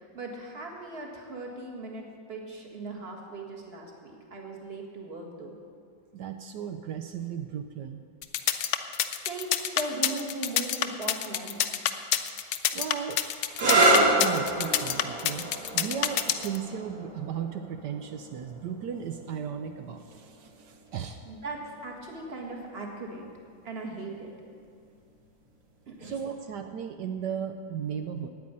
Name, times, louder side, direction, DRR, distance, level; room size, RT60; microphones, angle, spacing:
voice 1, 0.0-5.6 8.7-11.7 21.3-23.3 23.6-24.3 25.9-26.2, right 2 dB, 30° right, 0 dB, 1.9 m, -39 dB
voice 2, 6.1-8.0 12.7-15.5 15.7-21.2 26.0-28.3, right 8 dB, 70° right, 7 dB, 1.1 m, -35 dB
sound 1, 8.2-16.6, left 11 dB, 75° left, 1.3 m, -27 dB
sound 2, 13.5-20.9 21.9-22.5 26.0-26.3, right 2 dB, 55° right, 2.4 m, -28 dB
9.4 x 8.9 x 9.8 m, 2.2 s
omnidirectional pair, 2.1 m